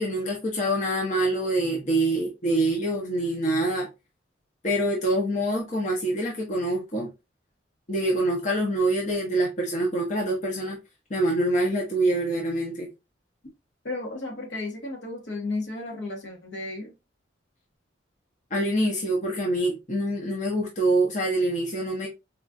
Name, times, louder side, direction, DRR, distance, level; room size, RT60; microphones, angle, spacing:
voice 1, 0.0-3.9 4.6-7.1 7.9-10.8 11.1-12.9 18.5-22.1, right 1 dB, 40° left, 0.8 m, -25 dB
voice 2, 13.8-16.9, left 2 dB, 70° left, 1.4 m, -33 dB
4.3 x 2.4 x 2.5 m
head